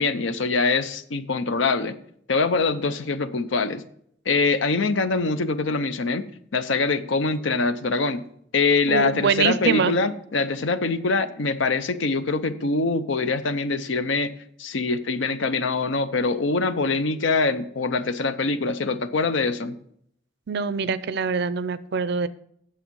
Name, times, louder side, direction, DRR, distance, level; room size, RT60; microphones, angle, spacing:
voice 1, 0.0-2.0 2.3-3.8 4.3-6.3 6.5-8.2 8.5-14.3 14.6-19.7, left 3 dB, 70° left, 12 dB, 0.6 m, -24 dB
voice 2, 8.9-9.9 20.5-22.3, right 5 dB, 55° right, 15 dB, 0.5 m, -24 dB
8.9 x 7.0 x 5.3 m, 0.68 s
head